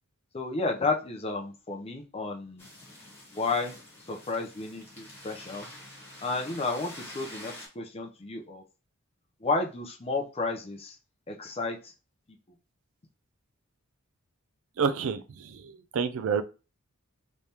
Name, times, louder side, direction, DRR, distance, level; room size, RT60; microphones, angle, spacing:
voice 1, 0.3-2.7 3.3-3.7 4.1-5.7 6.2-8.6 9.4-11.0 11.3-11.9, left 3 dB, 30° left, 2 dB, 0.6 m, -32 dB
sound 1, 2.6-7.7, left 1 dB, 10° left, 1.4 m, -47 dB
voice 2, 14.8-16.4, right 6 dB, 65° right, 11 dB, 0.4 m, -29 dB
3.4 x 3.2 x 2.8 m, 0.32 s
head